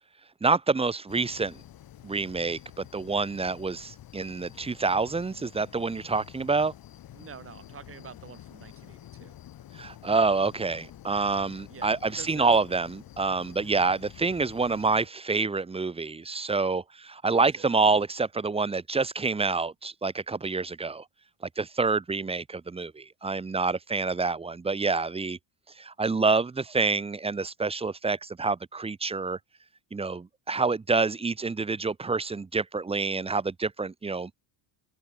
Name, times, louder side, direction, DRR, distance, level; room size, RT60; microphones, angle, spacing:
voice 1, 0.4-1.6 2.0-6.7 9.7-21.0 21.6-25.4 25.8-29.4 29.9-34.3, right 4 dB, 10° right, 0.9 m, -27 dB
sound 1, 1.1-15.1, left 12 dB, 45° left, 7.2 m, -49 dB
voice 2, 7.1-9.4 11.7-12.6 17.3-17.7, right 7 dB, 25° right, 3.1 m, -47 dB
open air
cardioid pair, 155°, 47 cm